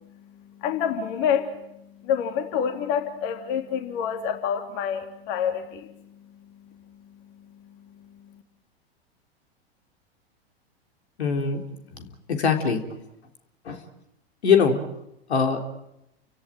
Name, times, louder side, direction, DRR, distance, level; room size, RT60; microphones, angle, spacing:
voice 1, 0.6-1.5 2.0-5.9, left 8 dB, 50° left, 5 dB, 3.4 m, -27 dB
voice 2, 11.2-11.6 12.0-12.8 13.7-13.8 14.4-14.8 15.3-15.6, left 6 dB, 80° left, 4 dB, 3.7 m, -22 dB
30.0 x 17.0 x 9.3 m, 0.84 s
hypercardioid pair, 105°, 32 cm